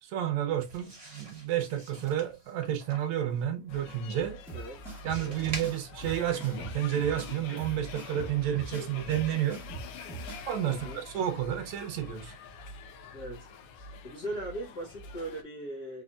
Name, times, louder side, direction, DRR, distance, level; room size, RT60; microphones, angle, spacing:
voice 1, 0.0-4.4 5.0-9.6 10.5-12.4, right 11 dB, 75° right, 2.0 m, -31 dB
sound 1, 0.6-6.7, right 2 dB, 25° right, 0.9 m, -47 dB
sound 2, 3.7-15.4, left 4 dB, 75° left, 1.3 m, -45 dB
sound 3, 4.5-10.5, right 3 dB, ahead, 1.1 m, -43 dB
voice 2, 10.6-11.0 13.1-13.5 14.0-16.0, right 1 dB, 45° left, 1.4 m, -39 dB
4.6 x 4.1 x 2.4 m
omnidirectional pair, 3.3 m